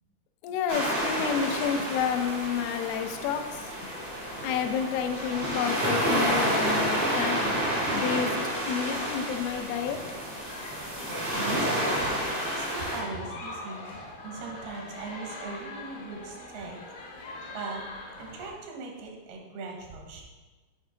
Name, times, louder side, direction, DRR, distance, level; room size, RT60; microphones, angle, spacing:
voice 1, 0.4-3.7 4.4-7.6 7.9-8.3 8.7-10.0, left 7 dB, 80° left, 6 dB, 2.3 m, -30 dB
sound 1, 0.7-13.0, right 1 dB, 40° right, 0.7 m, -29 dB
sound 2, 3.8-18.5, left 2 dB, 60° left, 1.3 m, -43 dB
voice 2, 11.3-12.1 12.6-13.8 14.2-16.8 17.5-17.8 18.2-20.2, right 4 dB, 85° right, 1 dB, 2.9 m, -39 dB
7.4 x 4.5 x 3.7 m, 1.3 s
omnidirectional pair, 4.3 m